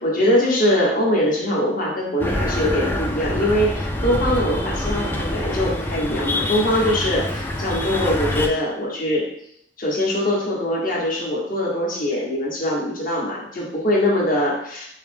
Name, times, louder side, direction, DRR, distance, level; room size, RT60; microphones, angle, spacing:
voice 1, 0.0-9.3 9.8-14.9, left 1 dB, 50° left, -3 dB, 1.1 m, -22 dB
sound 1, 2.2-8.5, left 1 dB, 10° left, 0.3 m, -25 dB
4.8 x 2.0 x 3.3 m, 0.71 s
head